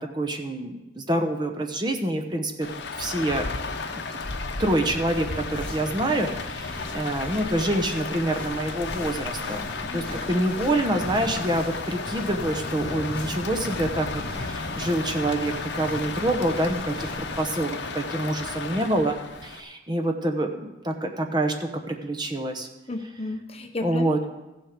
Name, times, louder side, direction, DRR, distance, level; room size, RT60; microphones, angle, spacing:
voice 1, 0.0-2.7 3.0-3.5 4.6-22.7 23.8-24.2, right 1 dB, 20° right, 4 dB, 0.9 m, -27 dB
Rain, 2.6-19.6, left 4 dB, 70° left, 1.0 m, -33 dB
sound 1, 5.1-17.4, left 1 dB, 5° left, 2.5 m, -41 dB
voice 2, 9.9-10.2 10.6-10.7 22.9-24.3, left 2 dB, 30° left, 5 dB, 0.9 m, -33 dB
15.0 x 7.6 x 5.1 m, 1.0 s
head